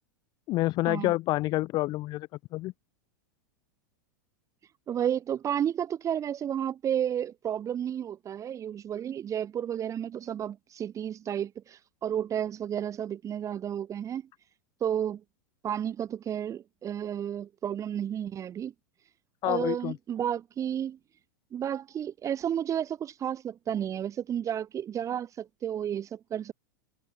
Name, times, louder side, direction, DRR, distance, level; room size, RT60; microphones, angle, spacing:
voice 1, 0.5-2.7 19.4-20.0, left 18 dB, 40° left, 1.5 m, -28 dB
voice 2, 4.9-14.2 14.8-15.2 15.6-18.7 19.4-21.0 21.5-26.5, right 9 dB, 30° right, 5.0 m, -32 dB
hypercardioid pair, 95°, 11 cm